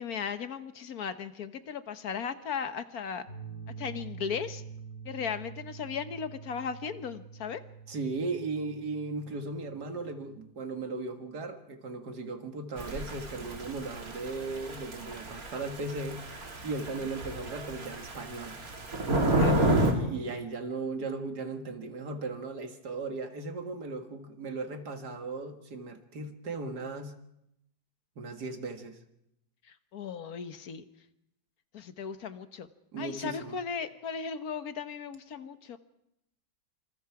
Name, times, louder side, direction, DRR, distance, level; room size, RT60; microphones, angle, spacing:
voice 1, 0.0-3.3 3.8-4.6 5.0-7.6 17.0-17.1 19.3-19.6 29.7-30.8 31.7-32.7 33.0-35.8, left 6 dB, 65° left, 10 dB, 1.5 m, -36 dB
sound 1, 3.3-10.5, right 6 dB, 45° left, 6.9 m, -46 dB
voice 2, 7.9-16.2 16.6-18.6 19.4-27.1 28.2-29.0 32.9-33.6, right 3 dB, 75° right, 6 dB, 2.5 m, -37 dB
Thunder / Rain, 12.8-19.9, right 1 dB, 60° right, 3.0 m, -30 dB
26.5 x 26.0 x 4.8 m, 0.81 s
omnidirectional pair, 1.8 m